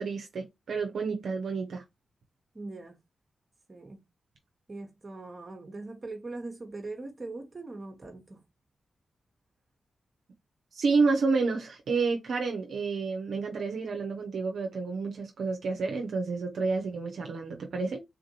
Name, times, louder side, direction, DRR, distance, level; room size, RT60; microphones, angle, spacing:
voice 1, 0.0-1.8 10.7-18.0, right 4 dB, 75° right, 0.6 m, -29 dB
voice 2, 2.5-2.9 3.7-4.0 4.7-8.4, right 2 dB, 40° right, 1.0 m, -41 dB
3.6 x 2.5 x 2.8 m
supercardioid pair, 45°, 0 cm